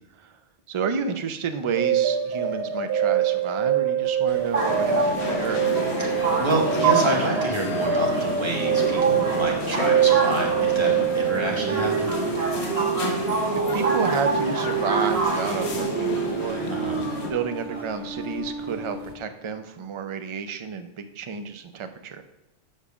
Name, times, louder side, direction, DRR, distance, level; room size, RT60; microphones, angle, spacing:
voice 1, 0.7-5.8 13.1-13.3 13.7-16.6 17.0-22.2, right 6 dB, 40° right, 8 dB, 0.4 m, -31 dB
sound 1, 1.8-19.2, right 8 dB, 80° right, 1.0 m, -25 dB
sound 2, 4.3-19.1, right 4 dB, 60° right, 1.5 m, -30 dB
sound 3, 4.5-17.3, left 3 dB, 70° left, 1.3 m, -31 dB
voice 2, 6.0-12.1 16.7-17.1, right 2 dB, 25° right, -1 dB, 1.3 m, -28 dB
7.4 x 5.3 x 4.8 m, 0.92 s
omnidirectional pair, 1.2 m